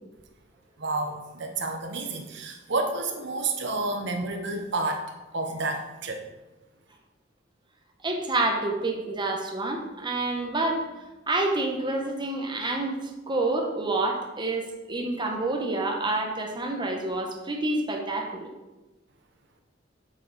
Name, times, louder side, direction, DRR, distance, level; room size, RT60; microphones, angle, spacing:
voice 1, 0.8-6.2, right 3 dB, 65° right, 4 dB, 0.9 m, -30 dB
voice 2, 8.0-10.9 11.3-13.0 13.3-18.5, right 2 dB, 25° right, 2 dB, 1.2 m, -28 dB
8.6 x 7.5 x 4.1 m, 1.1 s
head